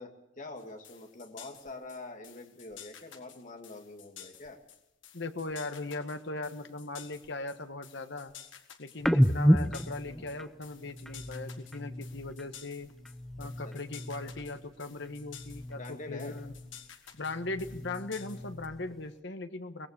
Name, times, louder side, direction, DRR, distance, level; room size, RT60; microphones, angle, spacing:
voice 1, 0.0-4.6 10.0-10.3 13.4-13.7 14.2-14.3 15.7-16.4, left 2 dB, 45° left, 4 dB, 2.4 m, -45 dB
sound 1, 0.6-18.7, left 9 dB, 80° left, 1.8 m, -52 dB
voice 2, 5.1-8.3 8.8-12.9 13.4-16.5 17.1-19.9, left 2 dB, 65° left, 8 dB, 1.4 m, -39 dB
sound 2, 9.0-12.6 12.9-14.7 15.0-16.9 17.2-19.1, equal, ahead, 0.7 m, -32 dB
22.5 x 19.5 x 6.7 m, 0.87 s
head